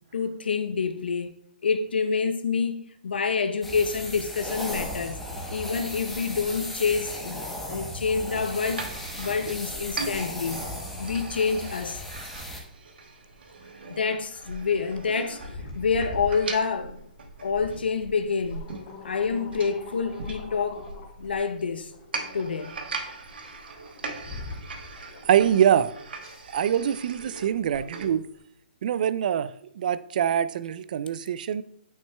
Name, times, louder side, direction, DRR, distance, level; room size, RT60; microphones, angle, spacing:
voice 1, 0.1-1.4 1.6-5.2 5.5-10.6 11.0-12.0 13.9-15.5 15.7-17.0 17.4-18.7 19.0-20.9 21.2-21.9 22.3-22.8, left 5 dB, 90° left, 0.6 m, -27 dB
sound 1, 3.6-12.6, left 1 dB, 5° left, 0.9 m, -36 dB
sound 2, 8.6-28.2, right 3 dB, 80° right, 1.1 m, -40 dB
sound 3, 9.8-28.4, left 3 dB, 35° left, 2.2 m, -44 dB
voice 2, 25.3-25.9 26.5-28.2 28.8-31.6, right 9 dB, 55° right, 0.4 m, -24 dB
8.8 x 6.0 x 2.2 m
hypercardioid pair, 150°, 5 cm